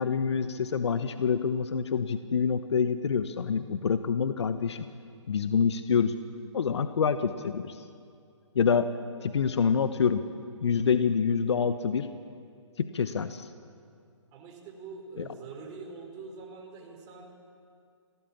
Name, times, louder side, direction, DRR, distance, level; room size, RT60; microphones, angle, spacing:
voice 1, 0.0-4.8 5.3-6.1 6.5-7.8 8.5-8.9 9.2-10.2 10.6-12.1 12.8-13.5, left 6 dB, 60° left, 10 dB, 1.2 m, -26 dB
voice 2, 14.3-17.4, right 4 dB, 25° right, 0 dB, 4.5 m, -44 dB
26.5 x 18.5 x 7.4 m, 2.3 s
figure-of-eight pair, 140°, 16 cm